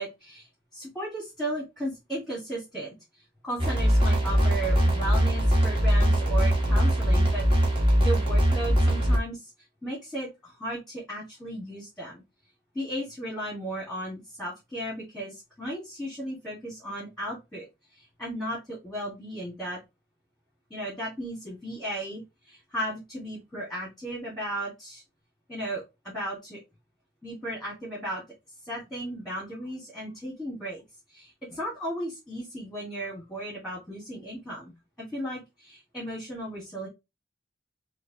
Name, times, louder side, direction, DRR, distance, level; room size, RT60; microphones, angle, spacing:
voice 1, 0.0-2.9 3.4-9.5 9.8-12.2 12.7-17.7 17.9-19.8 20.7-25.0 25.5-26.6 27.2-28.2 28.6-30.8 31.1-34.7 35.0-36.9, right 1 dB, ahead, -5 dB, 1.5 m, -35 dB
sound 1, 3.6-9.2, equal, 30° right, 1.2 m, -22 dB
4.4 x 2.5 x 2.8 m, 0.23 s
head